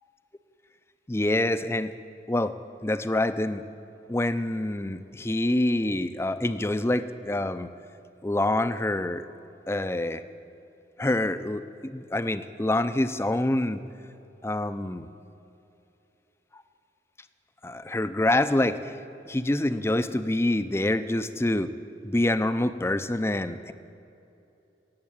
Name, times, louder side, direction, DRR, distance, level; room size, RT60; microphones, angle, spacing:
voice 1, 1.1-1.9 2.3-2.5 2.8-3.7 4.1-7.7 8.2-9.3 9.7-10.2 11.0-13.8 14.4-15.1 16.5-16.6 17.6-19.0 19.3-21.7 22.0-23.7, left 1 dB, 15° left, 12 dB, 0.5 m, -26 dB
17.5 x 7.5 x 8.9 m, 2.8 s
head